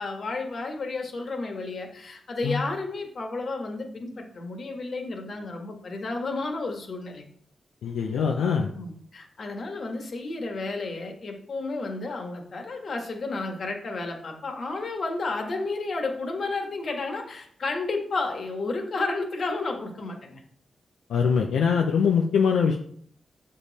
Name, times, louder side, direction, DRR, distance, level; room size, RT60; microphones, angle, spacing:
voice 1, 0.0-7.2 8.7-20.4, left 3 dB, 60° left, 3 dB, 1.6 m, -32 dB
voice 2, 7.8-8.7 21.1-22.8, left 6 dB, 90° left, 2 dB, 0.6 m, -23 dB
6.9 x 5.4 x 4.1 m, 0.62 s
cardioid pair, 55°, 0 cm